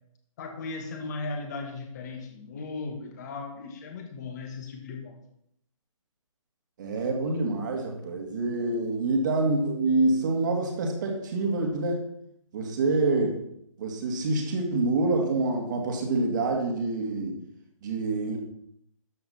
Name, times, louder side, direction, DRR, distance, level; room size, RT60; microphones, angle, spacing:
voice 1, 0.4-5.2, left 3 dB, 30° left, 4 dB, 2.0 m, -37 dB
voice 2, 6.8-12.0 12.5-13.4 13.8-17.4 17.8-18.4, right 2 dB, 35° right, 2 dB, 2.1 m, -26 dB
12.5 x 7.6 x 4.3 m, 0.73 s
figure-of-eight pair, 135°, 18 cm